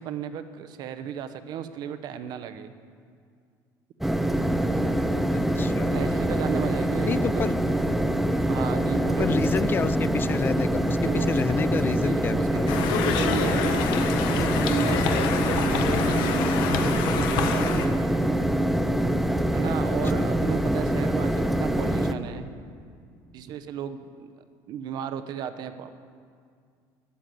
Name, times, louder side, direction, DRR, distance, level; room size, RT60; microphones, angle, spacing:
voice 1, 0.0-2.7 5.9-7.5 8.5-9.4 11.1-18.0 19.5-22.5 23.3-24.3 24.7-26.0, right 8 dB, 60° right, 10 dB, 0.9 m, -34 dB
sound 1, 4.0-22.1, right 1 dB, 5° right, 0.7 m, -24 dB
voice 2, 5.3-6.0 7.1-7.5 9.2-12.7 20.1-20.3, left 6 dB, 25° left, 18 dB, 0.3 m, -29 dB
Conversation, 12.7-17.9, left 7 dB, 80° left, 1.1 m, -28 dB
12.5 x 10.0 x 7.7 m, 2.2 s
cardioid pair, 120°, 8 cm